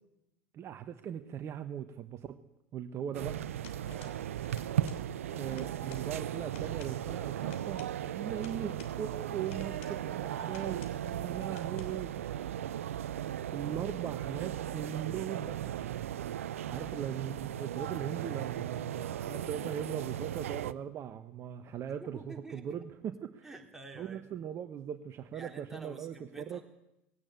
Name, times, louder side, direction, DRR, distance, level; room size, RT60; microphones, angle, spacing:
voice 1, 0.5-2.4 2.7-3.4 5.3-12.4 13.5-16.0 16.7-23.5 24.0-26.6, right 9 dB, 35° right, 9 dB, 1.2 m, -39 dB
sound 1, 3.1-20.7, right 11 dB, 70° right, 0.7 m, -37 dB
sound 2, 3.6-4.2 4.5-5.1 5.3-6.1 6.4-7.0 7.4-9.0 9.5-10.0 10.4-11.0 11.4-11.9, left 7 dB, 65° left, 2.9 m, -55 dB
voice 2, 3.9-4.2 9.6-10.8 12.2-12.7 16.7-16.9 21.9-22.8 23.4-24.3 25.3-26.6, right 3 dB, 5° right, 1 dB, 3.9 m, -50 dB
20.0 x 17.0 x 9.0 m, 0.86 s
figure-of-eight pair, 80°, 7 cm